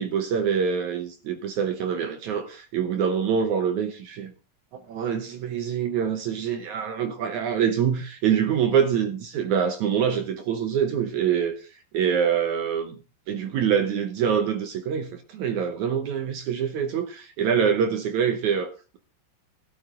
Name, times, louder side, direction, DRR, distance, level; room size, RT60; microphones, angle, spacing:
voice 1, 0.0-4.3 4.9-11.7 11.9-13.0 13.3-19.0, right 7 dB, 65° right, 2.2 m, -25 dB
14.0 x 12.5 x 3.7 m
omnidirectional pair, 3.9 m